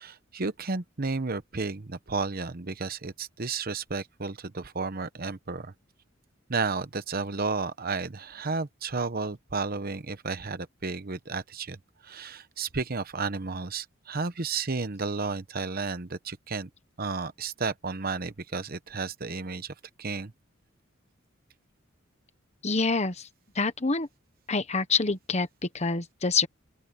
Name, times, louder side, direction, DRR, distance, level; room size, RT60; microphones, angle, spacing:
voice 1, 0.0-5.7 6.5-11.8 12.0-16.7 17.0-20.3, right 4 dB, 50° right, 1.0 m, -32 dB
voice 2, 22.6-23.3 23.5-24.1 24.5-26.5, left 4 dB, 35° left, 1.2 m, -26 dB
open air
head